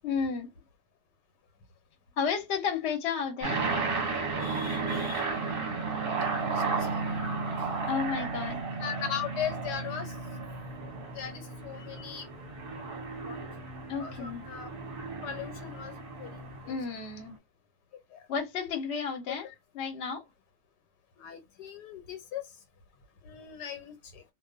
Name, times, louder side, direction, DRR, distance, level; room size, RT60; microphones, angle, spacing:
voice 1, 0.0-0.5 2.2-3.6 7.8-8.6 11.7-11.9 13.9-14.5 16.7-17.4 18.3-19.5 19.7-20.2, left 6 dB, 50° left, 0.9 m, -32 dB
sound 1, 3.4-17.1, right 4 dB, 40° right, 0.9 m, -34 dB
voice 2, 4.4-5.3 6.2-7.2 8.8-10.2 11.1-12.3 13.3-13.4 14.0-14.7 15.2-16.7 18.1-18.2 19.3-19.5 21.2-22.4 23.2-24.2, left 9 dB, 80° left, 1.3 m, -39 dB
2.5 x 2.4 x 2.3 m
omnidirectional pair, 1.8 m